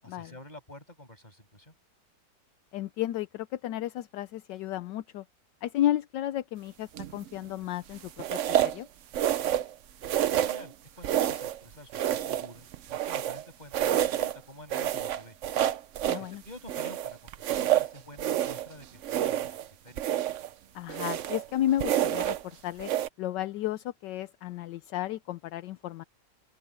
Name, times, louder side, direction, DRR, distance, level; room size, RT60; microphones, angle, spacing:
voice 1, 0.0-1.7 10.1-15.4 16.1-19.6 19.8-20.0, left 1 dB, 20° left, 8.3 m, -49 dB
voice 2, 2.7-5.2 5.6-8.9 16.1-16.4 20.7-22.9 23.2-26.0, left 13 dB, 75° left, 1.3 m, -33 dB
sound 1, 7.0-7.3 8.2-8.8 9.1-9.7 10.0-10.7 11.0-11.6 11.9-13.4 13.7-14.4 14.7-16.3 16.7-18.7 19.0-19.7 20.0-20.5 20.9-21.5 21.8-22.4 22.8-23.1, right 11 dB, 65° right, 0.7 m, -28 dB
open air
omnidirectional pair, 2.0 m